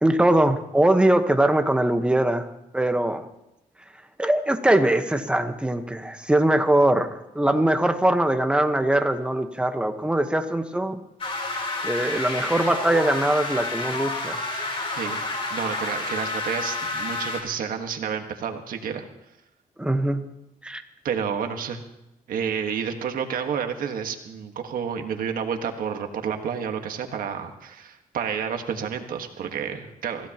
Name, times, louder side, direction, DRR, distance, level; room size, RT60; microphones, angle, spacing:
voice 1, 0.0-2.5 2.7-3.2 4.2-11.0 11.8-14.4 19.8-20.2 20.6-20.8, right 1 dB, 5° right, 7 dB, 1.2 m, -22 dB
sound 1, 11.2-17.4, left 2 dB, 40° left, 3.8 m, -29 dB
voice 2, 15.5-19.0 21.0-21.8 22.3-30.3, right 7 dB, 80° right, 5 dB, 1.6 m, -30 dB
25.5 x 16.0 x 3.0 m, 0.88 s
cardioid pair, 125°, 14 cm